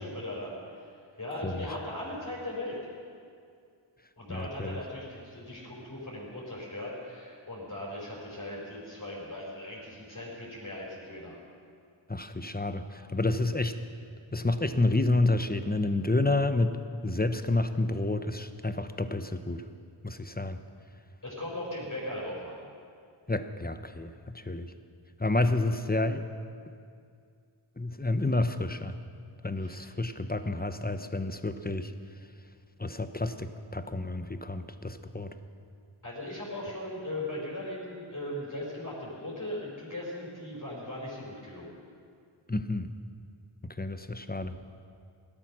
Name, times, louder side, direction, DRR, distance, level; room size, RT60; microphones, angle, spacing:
voice 1, 0.0-2.8 4.2-11.4 21.2-22.6 29.6-29.8 36.0-41.7, left 1 dB, 35° left, -5 dB, 4.7 m, -38 dB
voice 2, 4.3-4.8 12.1-13.8 14.3-19.6 20.0-20.6 23.3-24.7 25.2-26.3 27.8-28.9 29.4-31.9 32.8-35.3 42.5-42.9 43.6-44.5, left 2 dB, 20° left, 9 dB, 0.8 m, -29 dB
16.5 x 12.5 x 6.2 m, 2.3 s
wide cardioid pair, 50°, 50 cm